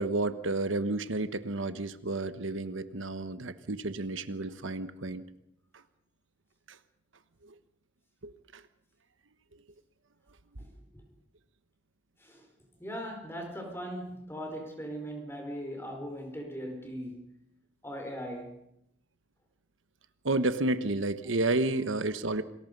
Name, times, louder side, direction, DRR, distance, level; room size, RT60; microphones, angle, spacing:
voice 1, 0.0-5.2 5.7-5.8 6.7-6.8 7.4-7.5 8.2-8.6 20.2-22.4, right 2 dB, 85° right, 1.2 m, -31 dB
voice 2, 12.8-17.4 17.8-18.6, equal, 10° left, 4.9 m, -39 dB
28.5 x 20.5 x 5.4 m
head